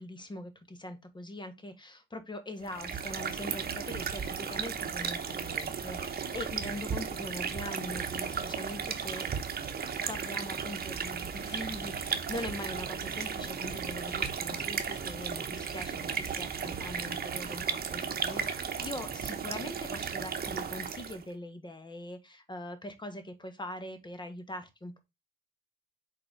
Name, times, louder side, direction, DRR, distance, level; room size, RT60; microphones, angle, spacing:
voice 1, 0.0-9.3 10.1-25.0, left 1 dB, 25° left, 1.4 m, -42 dB
sound 1, 2.6-21.3, right 6 dB, 50° right, 1.0 m, -35 dB
sound 2, 11.3-19.9, left 4 dB, 55° left, 1.9 m, -56 dB
4.8 x 4.0 x 5.0 m
cardioid pair, 75°, 20 cm